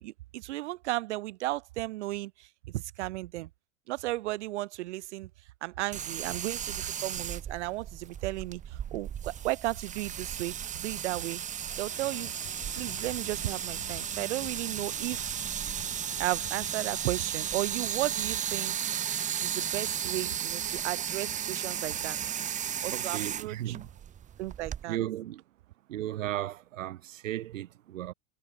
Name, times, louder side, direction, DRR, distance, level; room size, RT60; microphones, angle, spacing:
voice 1, 0.0-3.5 3.9-5.3 5.6-10.5 10.8-11.4 11.8-12.3 12.7-15.4 16.2-18.8 19.4-22.2 22.8-23.8 24.4-25.0, right 17 dB, 65° right, 1.9 m, -34 dB
sound 1, 5.9-24.8, right 9 dB, 20° right, 1.8 m, -35 dB
sound 2, 11.9-17.0, left 18 dB, 35° left, 6.0 m, -49 dB
voice 2, 22.9-23.9 24.8-25.4 25.9-28.1, right 13 dB, 85° right, 1.4 m, -35 dB
supercardioid pair, 145°, 37 cm